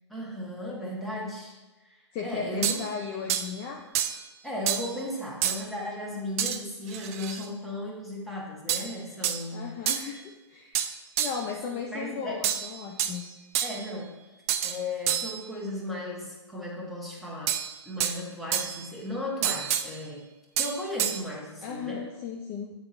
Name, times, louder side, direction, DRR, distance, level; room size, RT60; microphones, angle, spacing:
voice 1, 0.1-1.6 1.8-2.8 4.4-9.7 11.7-12.4 13.6-14.1 14.6-17.6 17.8-20.3 20.6-22.1, left 1 dB, ahead, -5 dB, 1.3 m, -36 dB
voice 2, 2.1-3.8 9.5-10.2 10.5-10.8 11.2-13.3 21.6-22.7, left 6 dB, 25° left, 1 dB, 0.5 m, -36 dB
sound 1, 2.6-2.9 3.3-3.5 4.0-4.2 4.7-4.9 5.4-5.6 6.4-6.6 6.9-7.5 8.7-8.9 9.2-9.4 9.9-10.1 10.8-11.4 12.4-13.2 13.5-13.9 14.5-14.8 15.1-15.4 17.5-18.2 18.5-18.9 19.4-19.9 20.6-21.2, right 10 dB, 30° right, 0.4 m, -28 dB
8.8 x 3.7 x 4.2 m, 1.1 s
hypercardioid pair, 130°, 15 cm